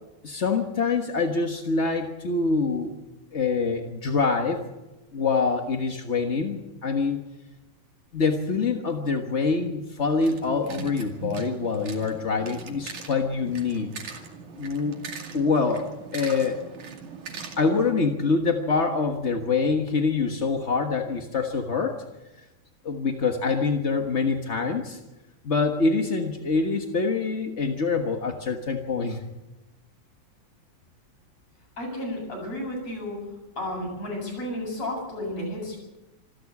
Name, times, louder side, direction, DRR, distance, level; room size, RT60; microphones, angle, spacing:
voice 1, 0.2-3.0 3.3-4.6 5.1-7.2 8.1-13.9 14.6-14.9 15.3-15.9 16.1-16.6 17.6-22.0 22.8-25.0 25.4-29.2, left 4 dB, 40° left, 4 dB, 0.9 m, -25 dB
sound 1, 10.1-17.9, right 5 dB, 80° right, 3.9 m, -41 dB
voice 2, 31.8-33.2 33.6-35.8, left 1 dB, 60° left, 0 dB, 9.1 m, -32 dB
26.5 x 14.0 x 8.4 m, 1.0 s
omnidirectional pair, 3.4 m